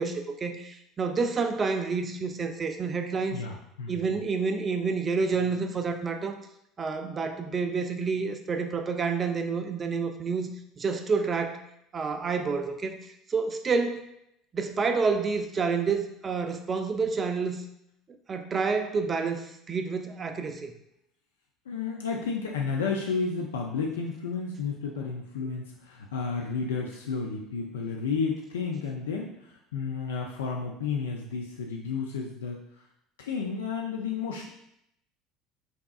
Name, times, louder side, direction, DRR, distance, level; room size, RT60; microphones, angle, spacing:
voice 1, 0.0-3.4 3.9-6.4 6.8-10.5 10.8-11.6 11.9-13.0 13.3-14.0 14.5-17.6 18.3-20.7, right 4 dB, 35° right, 7 dB, 0.5 m, -29 dB
voice 2, 3.3-4.0 21.7-32.6 33.2-34.5, left 5 dB, 85° left, 1 dB, 0.4 m, -32 dB
4.0 x 3.4 x 2.4 m, 0.77 s
hypercardioid pair, 70°, 0 cm